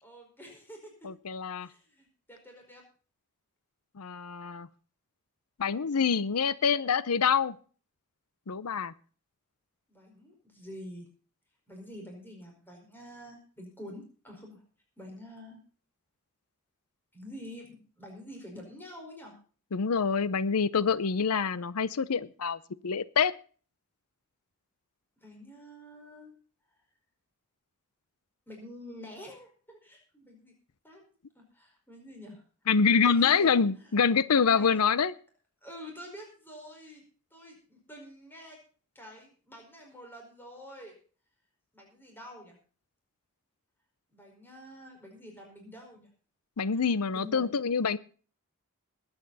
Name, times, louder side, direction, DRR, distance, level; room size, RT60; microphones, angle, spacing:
voice 1, 0.0-1.1 1.6-2.8 9.9-11.1 11.7-14.6 15.0-15.6 17.1-19.4 25.2-26.3 28.5-30.5 30.8-31.0 31.3-32.4 33.0-33.9 34.4-34.8 35.6-37.0 37.3-38.6 38.9-40.9 41.7-42.6 44.1-46.1 46.7-46.8 47.1-47.6, equal, 10° left, 1 dB, 4.9 m, -47 dB
voice 2, 1.0-1.7 4.0-4.7 5.6-7.6 8.5-8.9 19.7-23.3 32.7-35.1 46.6-48.0, left 6 dB, 85° left, 17 dB, 0.6 m, -26 dB
20.5 x 9.1 x 4.1 m, 0.41 s
head